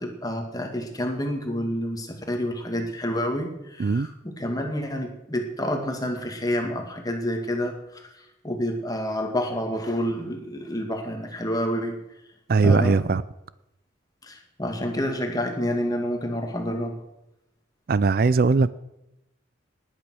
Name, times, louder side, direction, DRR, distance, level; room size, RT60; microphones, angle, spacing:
voice 1, 0.0-12.0 12.6-13.0 14.2-17.0, equal, 20° left, 4 dB, 2.1 m, -29 dB
voice 2, 12.5-13.2 17.9-18.7, right 4 dB, 50° right, 17 dB, 0.4 m, -19 dB
18.5 x 9.0 x 6.2 m, 0.89 s
head